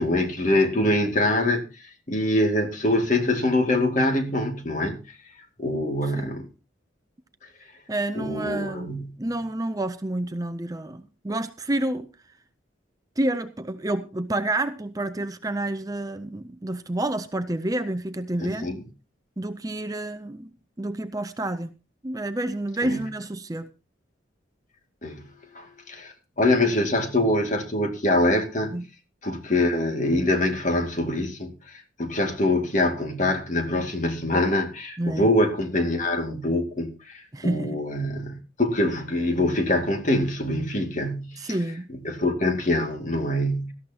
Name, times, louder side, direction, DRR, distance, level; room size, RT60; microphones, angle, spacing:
voice 1, 0.0-1.6 2.1-5.0 5.6-6.5 8.2-9.1 18.4-18.8 22.8-23.0 25.0-25.2 25.5-28.7 29.2-41.6 42.0-43.7, left 1 dB, 40° left, 2.3 m, -24 dB
voice 2, 6.0-6.4 7.9-12.1 13.2-18.7 19.4-21.7 22.0-23.7 28.7-28.9 35.0-35.3 37.3-37.8 41.4-41.9, right 1 dB, 20° right, 0.6 m, -29 dB
18.0 x 13.5 x 2.9 m
head